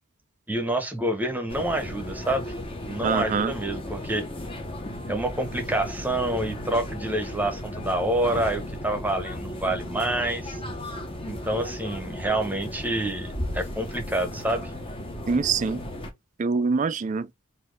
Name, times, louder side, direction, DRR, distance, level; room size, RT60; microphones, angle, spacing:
voice 1, 0.5-2.5 2.9-4.3 5.1-10.6 11.3-14.7, right 1 dB, 10° right, 0.9 m, -27 dB
sound 1, 1.5-16.1, left 1 dB, 25° left, 0.8 m, -35 dB
voice 2, 3.0-3.5 15.3-15.8 16.4-17.3, right 5 dB, 35° right, 0.3 m, -24 dB
4.2 x 2.7 x 3.2 m
head